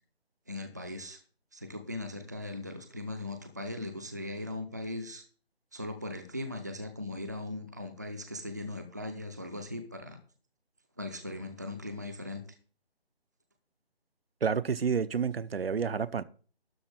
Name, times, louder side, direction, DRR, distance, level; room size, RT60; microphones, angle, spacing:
voice 1, 0.5-1.2 1.5-5.2 5.7-10.2 11.0-12.4, left 2 dB, 15° right, 0.5 m, -39 dB
voice 2, 14.4-16.2, right 6 dB, 65° right, 0.7 m, -29 dB
12.0 x 4.2 x 7.2 m
figure-of-eight pair, 160°, 32 cm